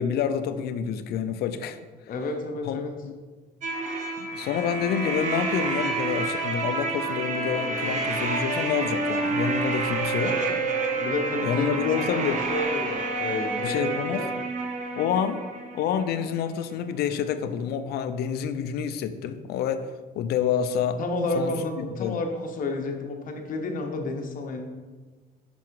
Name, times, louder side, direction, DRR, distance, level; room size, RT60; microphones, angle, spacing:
voice 1, 0.0-1.8 2.6-3.1 4.2-10.3 11.4-12.4 13.6-14.3 14.9-15.4 15.7-21.0 21.3-21.5 22.0-22.2, left 8 dB, 70° left, 11 dB, 0.5 m, -28 dB
voice 2, 2.1-2.9 10.2-10.7 11.0-12.2 12.5-14.3 21.0-24.6, left 2 dB, 55° left, 4 dB, 1.0 m, -31 dB
sound 1, 3.6-16.3, right 3 dB, 45° right, 1.1 m, -29 dB
6.1 x 4.7 x 4.6 m, 1.4 s
cardioid pair, 110°, 17 cm